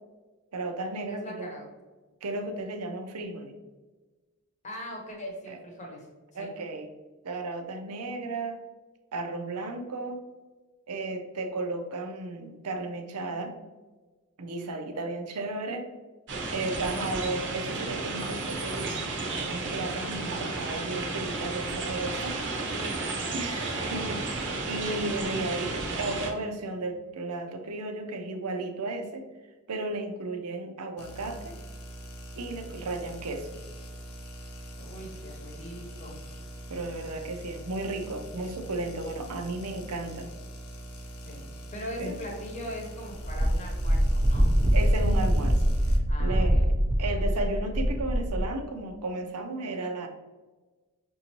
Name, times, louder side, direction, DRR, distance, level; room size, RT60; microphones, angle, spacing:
voice 1, 0.5-1.5 2.2-3.5 5.5-5.6 6.3-6.9 7.2-8.6 9.1-10.2 10.9-13.5 14.4-15.9 16.5-19.1 19.4-22.4 23.3-29.3 29.7-31.5 32.3-33.5 36.7-40.3 42.0-42.1 44.7-45.7 46.2-46.6 47.0-50.1, right 2 dB, 90° right, 5 dB, 0.6 m, -34 dB
voice 2, 1.1-1.7 4.6-6.1 6.3-6.5 22.5-23.6 33.0-33.1 34.7-36.2 41.2-44.5 46.1-46.7, equal, 30° left, 0 dB, 0.9 m, -41 dB
sound 1, 16.3-26.3, right 3 dB, 55° right, 0.7 m, -33 dB
sound 2, 31.0-46.0, equal, 90° left, 0.7 m, -43 dB
Wind, 43.2-48.5, equal, 25° right, 0.4 m, -24 dB
5.4 x 2.6 x 2.9 m, 1.3 s
head